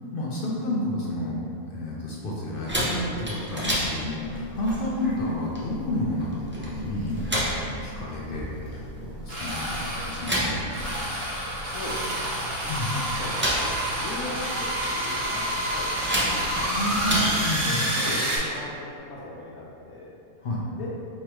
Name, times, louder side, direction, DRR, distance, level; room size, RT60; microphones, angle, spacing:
voice 1, 0.1-1.4 1.7-10.8 12.7-12.9 16.7-17.9 20.4-20.6, left 1 dB, 60° left, -4 dB, 0.6 m, -30 dB
sound 1, 2.7-17.5, equal, 15° right, 0.3 m, -32 dB
sound 2, 7.1-7.2 7.5-7.6 9.3-18.4, right 1 dB, 50° right, 1.0 m, -29 dB
voice 2, 11.6-16.8 17.6-20.2 20.7-20.9, left 2 dB, 85° left, -5 dB, 1.1 m, -39 dB
4.7 x 3.4 x 3.0 m, 2.6 s
omnidirectional pair, 1.5 m